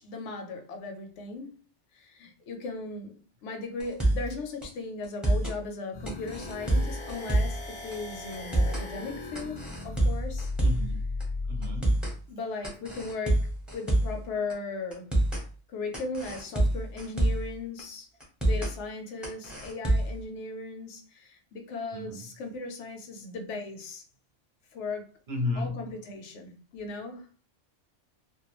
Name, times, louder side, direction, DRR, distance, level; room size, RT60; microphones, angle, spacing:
voice 1, 0.0-1.6 1.9-10.5 12.3-15.1 15.7-18.1 18.4-24.0 24.7-25.1 25.6-27.3, left 3 dB, 75° left, 0.9 m, -37 dB
sound 1, 3.8-4.3 4.6-4.7 5.0-5.6 6.1-7.6 7.9-8.0 8.3-8.9 9.3-10.9 11.2-11.3 11.6-12.2 12.6-14.2 14.5-14.6 14.9-15.4 15.9-17.5 17.8-17.9 18.2-18.7 19.2-20.2, right 1 dB, ahead, 0.6 m, -26 dB
sound 2, 5.9-11.8, left 3 dB, 45° left, 0.4 m, -36 dB
voice 2, 10.6-11.0 11.5-12.0 21.9-22.3 25.3-25.9, left 2 dB, 55° right, 0.7 m, -33 dB
2.3 x 2.2 x 2.9 m
omnidirectional pair, 1.3 m